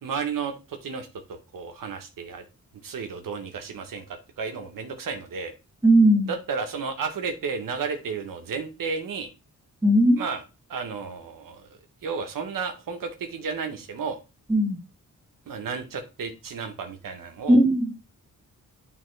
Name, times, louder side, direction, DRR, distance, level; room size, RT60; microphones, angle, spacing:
voice 1, 0.0-1.1 1.5-2.4 2.8-5.5 6.3-9.3 10.2-10.4 10.7-14.2 15.5-17.6, right 5 dB, 90° right, 5 dB, 1.1 m, -32 dB
voice 2, 5.8-6.3 9.8-10.3 14.5-14.8 17.5-17.9, right 1 dB, 10° right, 0 dB, 1.8 m, -18 dB
9.0 x 3.6 x 3.2 m, 0.28 s
wide cardioid pair, 105°, 32 cm